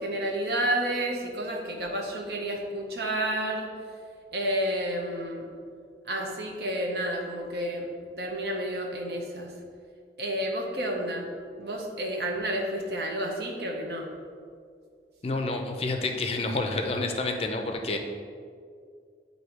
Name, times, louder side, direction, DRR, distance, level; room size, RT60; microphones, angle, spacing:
voice 1, 0.0-3.7 4.3-5.5 6.0-7.9 8.2-9.5 10.2-11.3 11.6-14.1, right 1 dB, 65° right, 1 dB, 0.8 m, -30 dB
voice 2, 15.2-18.0, left 2 dB, 35° left, 4 dB, 0.4 m, -29 dB
7.9 x 2.7 x 4.5 m, 2.2 s
head